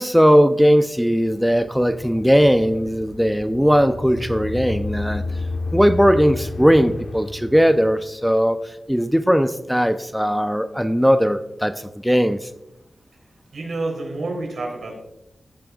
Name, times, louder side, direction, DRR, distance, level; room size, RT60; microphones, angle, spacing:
voice 1, 0.0-5.2 5.7-8.6 8.9-12.5, equal, ahead, 9 dB, 0.4 m, -18 dB
sound 1, 1.3-8.2, left 3 dB, 90° left, 1.1 m, -31 dB
voice 2, 13.5-15.0, right 2 dB, 80° right, 1 dB, 3.5 m, -28 dB
15.5 x 8.8 x 2.3 m, 0.85 s
wide cardioid pair, 120°, 0 cm